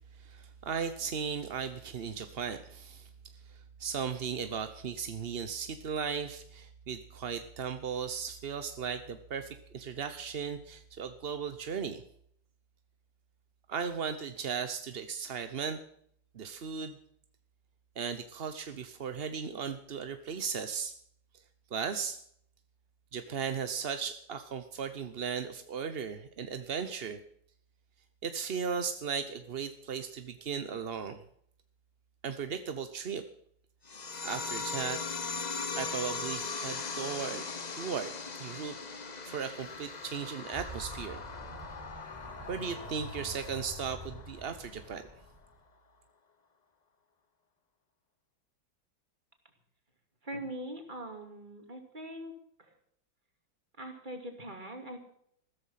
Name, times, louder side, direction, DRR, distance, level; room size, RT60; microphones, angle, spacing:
voice 1, 0.2-3.1 3.5-12.0 13.7-15.8 16.3-17.0 18.0-20.9 21.7-22.2 23.1-27.2 28.2-31.2 32.2-33.2 34.2-35.0 35.8-37.4 37.7-41.2 42.5-45.1, right 6 dB, 45° right, 9 dB, 0.7 m, -36 dB
sound 1, 33.9-44.9, left 4 dB, 35° left, 0.7 m, -39 dB
sound 2, 39.6-45.6, right 1 dB, 5° right, 4.3 m, -48 dB
voice 2, 50.2-52.7 53.8-55.0, right 1 dB, 25° right, 5 dB, 2.8 m, -42 dB
15.0 x 13.5 x 5.8 m, 0.66 s
omnidirectional pair, 2.0 m